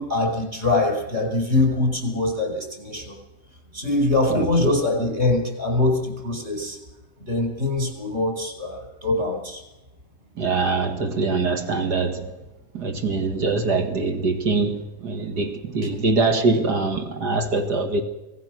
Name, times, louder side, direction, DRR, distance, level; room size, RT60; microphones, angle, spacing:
voice 1, 0.0-3.2 3.7-6.8 7.2-9.6, left 2 dB, 40° right, 5.0 m, -23 dB
voice 2, 4.3-4.7 10.4-12.3 12.7-18.0, right 3 dB, 75° right, 2.7 m, -23 dB
25.0 x 19.0 x 6.3 m
omnidirectional pair, 1.8 m